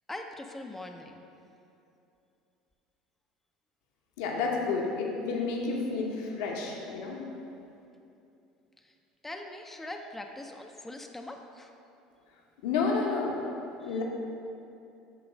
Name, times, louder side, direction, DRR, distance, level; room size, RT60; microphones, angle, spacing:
voice 1, 0.1-1.2 8.8-8.9 9.2-11.7 13.8-14.0, left 1 dB, 10° left, 3 dB, 0.5 m, -42 dB
voice 2, 4.2-7.3 12.6-13.4 13.8-14.0, left 4 dB, 75° left, 0 dB, 0.9 m, -30 dB
8.1 x 3.1 x 5.1 m, 2.7 s
hypercardioid pair, 80°, 2 cm